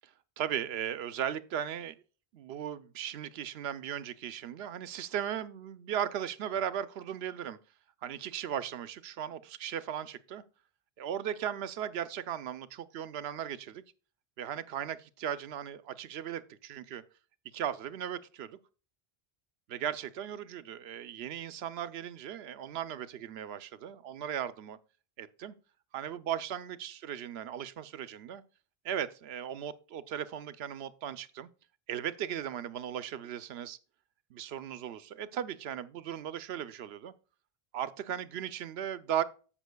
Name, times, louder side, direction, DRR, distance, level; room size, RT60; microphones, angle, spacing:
voice 1, 0.4-1.9 2.3-7.6 8.0-10.4 11.0-13.8 14.4-17.0 17.5-18.6 19.7-24.8 25.2-25.5 25.9-28.4 28.8-31.5 31.9-33.8 34.3-37.1 37.7-39.2, right 9 dB, 80° right, 0.9 m, -37 dB
14.5 x 6.1 x 2.2 m
omnidirectional pair, 1.0 m